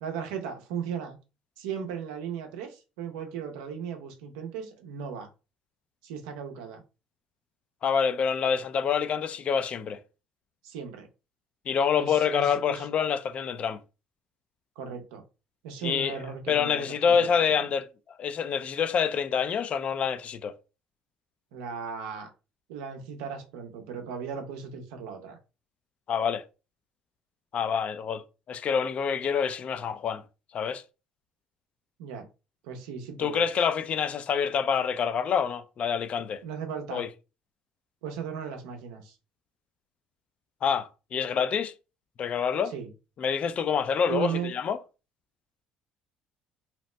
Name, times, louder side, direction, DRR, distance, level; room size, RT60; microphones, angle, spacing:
voice 1, 0.0-1.2 1.6-5.3 6.0-6.8 10.6-11.1 12.0-12.8 14.8-15.2 15.6-17.5 21.5-22.3 22.7-25.4 32.0-32.3 32.6-33.4 36.4-37.1 38.0-39.1 42.7-42.9 44.1-44.5, right 7 dB, 85° right, 0.6 m, -36 dB
voice 2, 7.8-10.0 11.7-13.8 15.8-16.2 16.5-17.9 18.2-20.5 26.1-26.4 27.5-28.2 28.5-30.2 30.5-30.8 33.2-36.4 36.9-37.1 40.6-41.7 42.2-42.7 43.2-44.8, left 7 dB, 50° left, 0.4 m, -27 dB
2.8 x 2.1 x 3.2 m
supercardioid pair, 75°, 3 cm